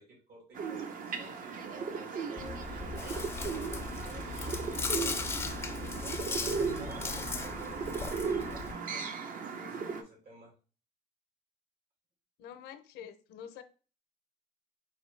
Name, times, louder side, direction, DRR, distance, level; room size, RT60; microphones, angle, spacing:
voice 1, 0.0-5.4 5.9-9.1 9.6-10.6, right 2 dB, 70° right, -1 dB, 2.0 m, -52 dB
sound 1, 0.6-10.0, right 5 dB, 55° right, 0.6 m, -37 dB
Chewing mastication, 2.4-8.7, left 3 dB, 15° left, 0.3 m, -37 dB
voice 2, 12.4-13.6, left 9 dB, 80° left, 10 dB, 0.5 m, -47 dB
4.1 x 2.6 x 3.1 m, 0.37 s
cardioid pair, 110°, 17 cm